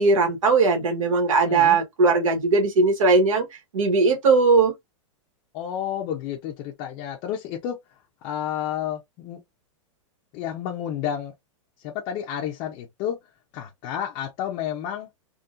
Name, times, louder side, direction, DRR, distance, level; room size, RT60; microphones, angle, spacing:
voice 1, 0.0-3.5 3.7-4.7, right 4 dB, 85° right, 1.5 m, -19 dB
voice 2, 5.5-7.8 8.2-9.4 10.3-11.3 11.8-13.2 13.5-15.1, left 10 dB, 30° left, 0.5 m, -30 dB
3.7 x 2.3 x 2.5 m
supercardioid pair, 165°, 17 cm